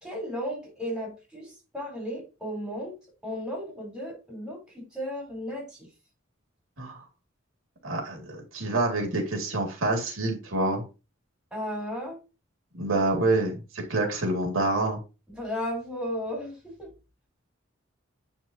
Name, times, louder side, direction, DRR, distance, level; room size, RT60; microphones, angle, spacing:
voice 1, 0.0-3.0 3.2-5.9 11.5-12.2 15.4-16.9, equal, 5° right, -2 dB, 3.4 m, -34 dB
voice 2, 7.8-10.8 12.7-15.0, right 2 dB, 80° right, 1 dB, 2.1 m, -27 dB
9.3 x 4.3 x 2.7 m, 0.30 s
head